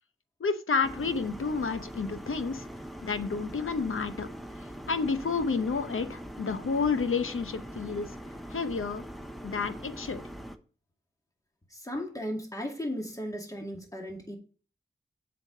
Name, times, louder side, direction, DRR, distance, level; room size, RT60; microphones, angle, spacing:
voice 1, 0.4-2.7 3.0-4.3 4.9-8.1 8.5-9.0 9.4-10.2, left 5 dB, 85° left, 10 dB, 0.8 m, -30 dB
sound 1, 0.8-10.6, equal, ahead, 0.9 m, -42 dB
voice 2, 11.7-14.4, equal, 15° left, 1 dB, 2.2 m, -36 dB
7.7 x 5.8 x 5.1 m, 0.39 s
cardioid pair, 45°, 21 cm